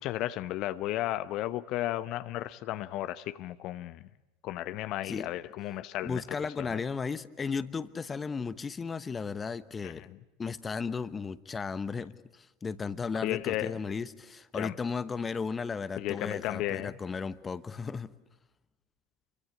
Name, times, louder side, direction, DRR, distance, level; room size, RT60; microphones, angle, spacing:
voice 1, 0.0-4.0 4.4-6.2 6.6-6.8 9.8-10.1 13.2-13.8 14.5-14.7 16.0-16.9, left 14 dB, 50° left, 12 dB, 0.9 m, -34 dB
voice 2, 6.0-10.0 10.4-18.1, left 5 dB, 20° left, 15 dB, 1.1 m, -35 dB
28.0 x 23.5 x 8.5 m, 1.0 s
figure-of-eight pair, 80°, 0 cm